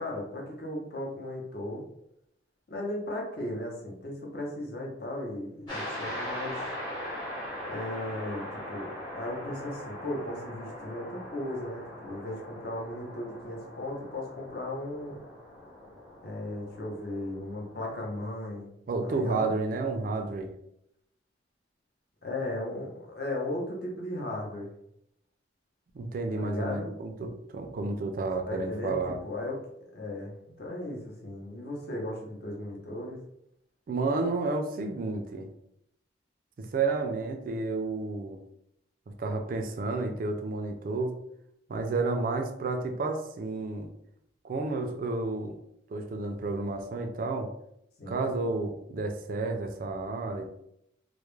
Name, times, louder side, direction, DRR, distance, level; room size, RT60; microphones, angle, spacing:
voice 1, 0.0-1.9 2.7-6.6 7.7-15.2 16.2-18.7 19.0-19.5 22.2-24.7 26.3-26.9 28.5-29.6 29.9-33.2 48.0-48.2, left 1 dB, 55° left, -1 dB, 0.7 m, -36 dB
sound 1, 5.7-18.2, left 1 dB, 25° left, 0.8 m, -41 dB
voice 2, 18.9-20.5 25.9-29.2 33.9-35.5 36.6-38.4 39.2-41.2 41.7-43.9 44.4-45.5 45.9-47.5 48.1-50.5, right 3 dB, 50° right, 5 dB, 0.3 m, -31 dB
2.3 x 2.0 x 3.0 m, 0.77 s
head